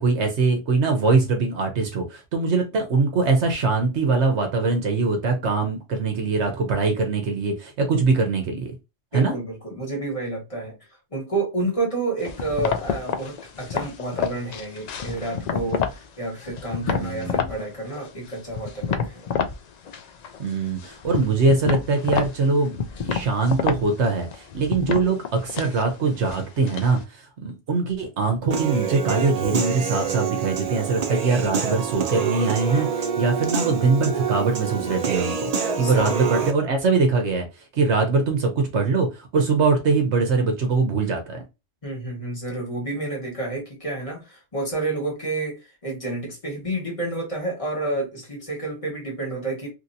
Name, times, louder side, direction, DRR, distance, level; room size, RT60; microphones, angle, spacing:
voice 1, 0.0-8.7 9.1-9.4 16.8-17.5 20.4-37.5 37.7-41.4, right 4 dB, 70° right, 1.0 m, -22 dB
voice 2, 9.1-10.8 11.1-19.3 35.7-36.2 41.8-49.7, right 2 dB, 30° left, 1.5 m, -29 dB
sound 1, 12.2-16.1 16.4-17.6 17.9-19.6 19.9-20.5 20.8-27.0, left 7 dB, 70° left, 0.4 m, -29 dB
Human voice / Piano, 28.5-36.5, right 6 dB, 45° right, 0.5 m, -27 dB
3.1 x 2.8 x 2.6 m
omnidirectional pair, 1.2 m